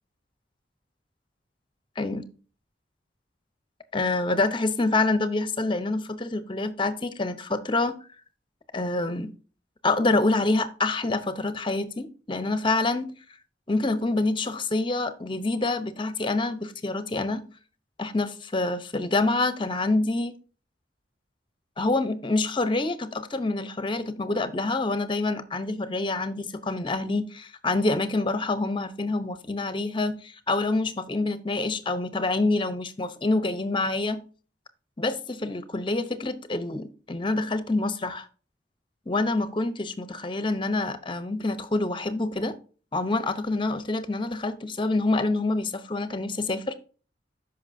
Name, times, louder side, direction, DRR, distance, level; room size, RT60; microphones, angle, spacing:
voice 1, 2.0-2.3 3.9-8.0 8.7-9.3 9.8-13.1 13.7-17.4 18.0-20.3 21.8-34.2 35.0-38.3 39.1-42.5 42.9-46.7, left 2 dB, 25° left, 0.8 m, -26 dB
13.0 x 5.6 x 2.7 m
head